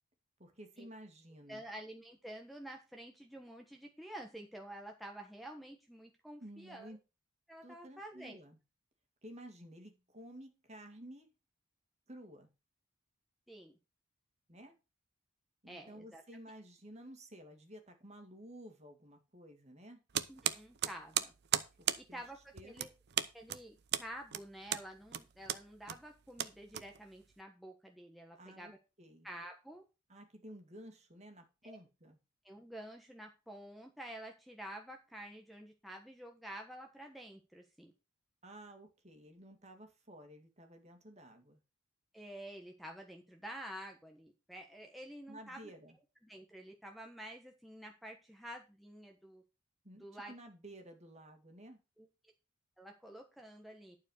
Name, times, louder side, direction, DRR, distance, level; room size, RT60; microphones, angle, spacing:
voice 1, 0.4-1.6 6.4-7.0 7.6-8.6 9.2-11.3 12.1-12.5 14.5-14.8 15.6-20.0 21.8-22.2 22.5-22.9 28.4-28.7 29.0-29.3 30.1-32.2 38.4-41.6 45.3-46.0 49.8-51.8, right 1 dB, 35° right, 5 dB, 2.2 m, -53 dB
voice 2, 1.5-6.9 7.5-8.4 13.5-13.8 15.7-16.2 20.3-21.3 22.1-22.9 23.3-28.8 29.2-29.8 31.6-31.7 32.4-37.9 42.1-45.7 46.2-49.4 50.0-50.3 52.0-52.1 52.8-54.0, right 1 dB, ahead, 1 dB, 1.2 m, -49 dB
sound 1, 20.1-27.3, right 10 dB, 55° right, 0.7 m, -37 dB
11.5 x 4.8 x 6.5 m, 0.29 s
head